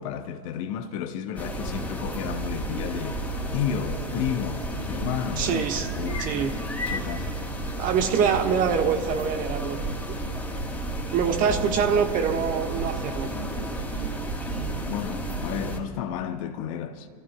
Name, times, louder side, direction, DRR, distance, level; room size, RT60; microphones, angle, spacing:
voice 1, 0.0-3.2 3.5-5.6 5.9-7.4 12.8-12.9 14.9-17.1, left 9 dB, 55° left, 0.8 m, -32 dB
sound 1, 1.4-15.8, right 1 dB, 5° left, 2.7 m, -32 dB
voice 2, 5.4-5.9 6.2-6.5 6.8-6.9 7.8-9.8 11.1-13.3, right 7 dB, 40° right, 1.5 m, -24 dB
29.0 x 15.0 x 2.3 m
figure-of-eight pair, 85°, 21 cm